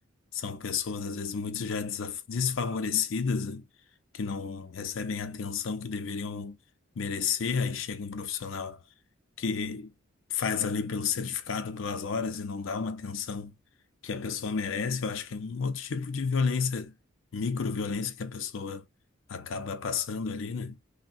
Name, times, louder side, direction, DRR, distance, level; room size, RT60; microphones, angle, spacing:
voice 1, 0.3-3.6 4.1-6.6 7.0-8.8 9.4-9.9 10.3-13.5 14.0-16.9 17.3-18.8 19.3-20.8, left 5 dB, 70° left, 0.5 m, -31 dB
3.4 x 2.1 x 2.5 m
head